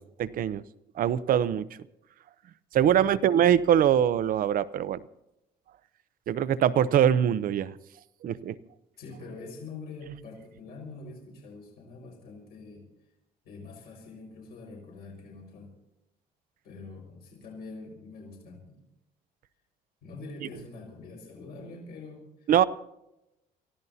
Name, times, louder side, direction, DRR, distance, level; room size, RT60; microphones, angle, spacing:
voice 1, 0.2-0.6 1.0-1.6 2.7-5.0 6.3-7.7 8.2-8.6 22.5-22.6, right 10 dB, 55° right, 15 dB, 0.7 m, -23 dB
voice 2, 2.8-3.1 9.0-12.9 13.4-15.7 16.6-18.8 20.0-22.7, left 3 dB, 70° left, -1 dB, 5.4 m, -44 dB
29.0 x 14.5 x 2.8 m, 0.89 s
cardioid pair, 110°, 17 cm